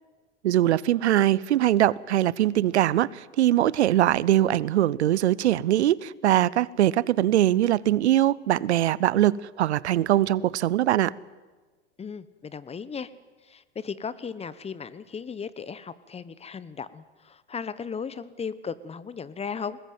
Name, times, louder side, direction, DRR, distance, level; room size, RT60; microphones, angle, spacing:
voice 1, 0.4-11.1, right 13 dB, 80° right, 22 dB, 0.7 m, -22 dB
voice 2, 12.0-13.1 13.4-19.8, left 6 dB, 20° left, 16 dB, 1.1 m, -36 dB
21.5 x 19.0 x 9.4 m, 1.3 s
hypercardioid pair, 95°, 33 cm